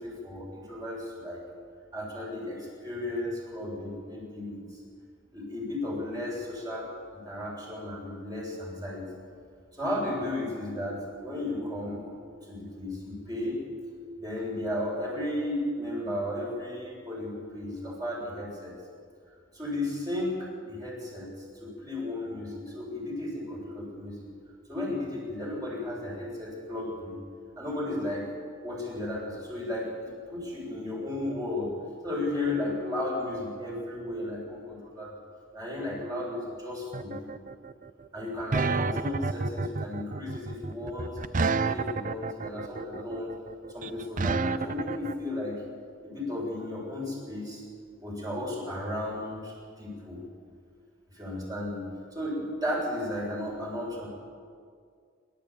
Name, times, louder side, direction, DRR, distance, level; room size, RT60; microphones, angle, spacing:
voice 1, 0.0-1.4 1.9-4.6 5.3-6.9 7.2-9.0 9.7-12.1 12.4-13.6 14.2-18.8 19.5-21.3 21.6-24.2 24.7-27.2 27.6-28.3 28.6-31.7 32.0-35.1 35.5-37.3 38.1-43.3 43.7-45.6 46.0-47.6 48.0-50.2 51.1-51.8 52.1-54.1, left 1 dB, 20° right, -3 dB, 7.3 m, -34 dB
sound 1, 36.9-45.1, right 4 dB, 40° right, 0.6 m, -29 dB
26.5 x 13.0 x 8.7 m, 2.2 s
head